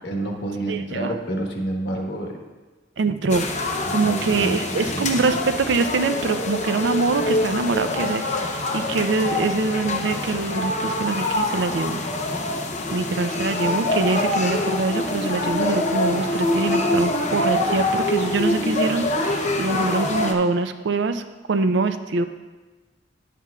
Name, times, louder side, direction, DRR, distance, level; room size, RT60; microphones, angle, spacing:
voice 1, 0.0-2.4 3.8-5.3, right 1 dB, 65° left, 2 dB, 1.2 m, -29 dB
voice 2, 0.7-1.2 3.0-3.5 3.9-12.0 12.9-21.2 21.5-22.3, right 3 dB, 65° right, 10 dB, 0.4 m, -24 dB
sound 1, 3.3-20.3, left 2 dB, 40° left, 0.7 m, -25 dB
11.0 x 7.5 x 2.3 m, 1.3 s
head